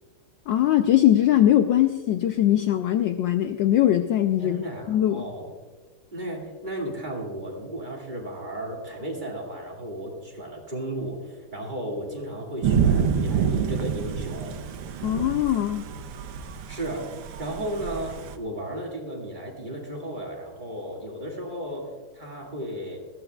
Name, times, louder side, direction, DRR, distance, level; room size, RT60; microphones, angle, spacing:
voice 1, 0.5-5.2 15.0-15.9, left 12 dB, 75° left, 8 dB, 1.1 m, -21 dB
voice 2, 4.4-5.5 6.1-14.6 16.7-17.1 17.4-23.0, right 1 dB, 20° right, -1 dB, 2.2 m, -34 dB
Thunder / Rain, 12.6-18.3, right 7 dB, 80° right, 1.7 m, -27 dB
19.5 x 14.5 x 2.4 m, 1.3 s
omnidirectional pair, 2.4 m